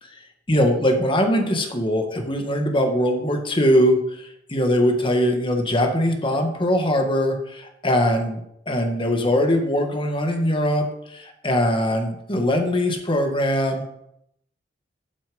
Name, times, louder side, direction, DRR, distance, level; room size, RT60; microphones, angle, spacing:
voice 1, 0.5-13.9, equal, 30° left, 4 dB, 1.8 m, -21 dB
12.5 x 7.4 x 5.4 m, 0.76 s
head